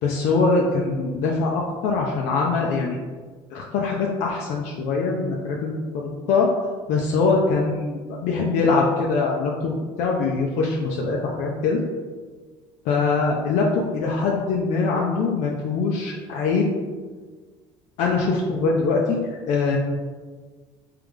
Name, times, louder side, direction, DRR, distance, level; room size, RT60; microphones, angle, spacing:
voice 1, 0.0-3.0 3.5-6.5 6.9-11.8 12.9-16.7 18.0-19.8, left 4 dB, 70° left, -2 dB, 0.5 m, -23 dB
3.5 x 3.3 x 3.5 m, 1.4 s
supercardioid pair, 80°, 13 cm